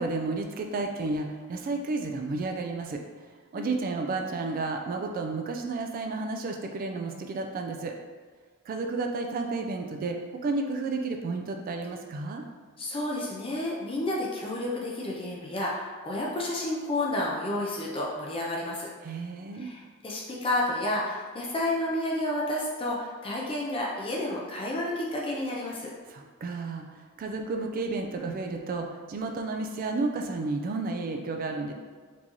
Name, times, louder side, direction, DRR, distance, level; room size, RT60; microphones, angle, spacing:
voice 1, 0.0-7.9 8.7-12.4 19.0-19.7 26.1-31.7, right 3 dB, 40° right, 4 dB, 0.3 m, -32 dB
voice 2, 12.8-18.9 19.6-25.9, left 1 dB, 25° left, -3 dB, 0.4 m, -31 dB
4.5 x 2.7 x 2.9 m, 1.5 s
head